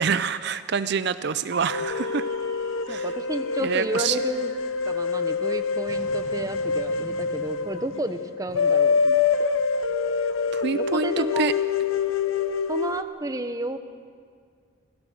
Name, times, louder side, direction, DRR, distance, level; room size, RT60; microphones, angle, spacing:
voice 1, 0.0-2.3 2.9-3.1 3.6-4.2 10.5-11.5, right 6 dB, 55° right, 13 dB, 0.5 m, -26 dB
sound 1, 1.5-4.2, right 7 dB, 80° right, 1.9 m, -42 dB
sound 2, 1.7-13.0, left 5 dB, 90° left, 0.9 m, -26 dB
sound 3, 1.8-10.4, left 1 dB, 15° left, 7.9 m, -49 dB
voice 2, 2.9-4.5 4.9-9.2 10.7-11.5 12.7-13.8, right 1 dB, 15° right, 9 dB, 0.9 m, -32 dB
26.5 x 16.5 x 6.4 m, 2.1 s
head